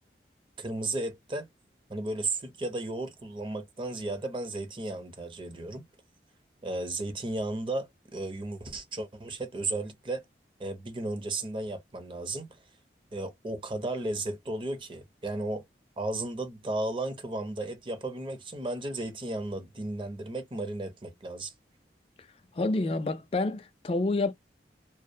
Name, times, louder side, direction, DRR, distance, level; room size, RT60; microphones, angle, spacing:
voice 1, 0.6-1.5 1.9-5.8 6.6-10.2 10.6-12.5 13.1-15.6 16.0-21.5, right 2 dB, 30° right, 0.5 m, -34 dB
voice 2, 22.5-24.3, left 2 dB, 30° left, 0.3 m, -28 dB
2.4 x 2.1 x 2.6 m
head